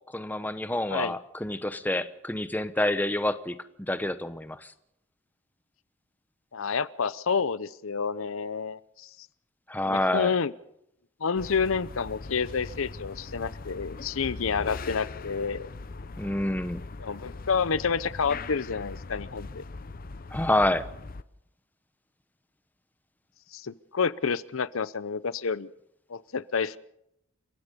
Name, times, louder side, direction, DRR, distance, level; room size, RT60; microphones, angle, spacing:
voice 1, 0.1-3.6 3.9-4.7 9.7-10.3 16.2-16.8 20.3-20.8, left 1 dB, 10° left, 12 dB, 0.9 m, -28 dB
voice 2, 6.5-9.1 9.8-10.5 11.2-15.7 17.0-19.6 23.5-25.7 26.1-26.8, left 5 dB, 85° left, 17 dB, 0.7 m, -29 dB
sound 1, 11.3-21.2, left 3 dB, 45° left, 0.7 m, -40 dB
30.0 x 16.5 x 5.3 m, 0.78 s
head